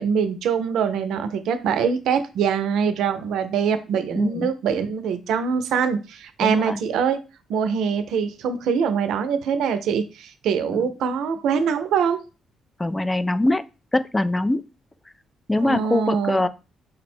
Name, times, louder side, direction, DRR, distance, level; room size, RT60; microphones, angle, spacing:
voice 1, 0.0-7.2 7.5-12.2 15.6-16.5, right 6 dB, 80° right, 9 dB, 0.5 m, -23 dB
voice 2, 4.2-4.5 6.4-6.8 12.8-13.6 13.9-14.6 15.5-16.5, left 1 dB, 15° left, 13 dB, 0.3 m, -22 dB
5.1 x 2.1 x 4.3 m, 0.31 s
cardioid pair, 90°, 0 cm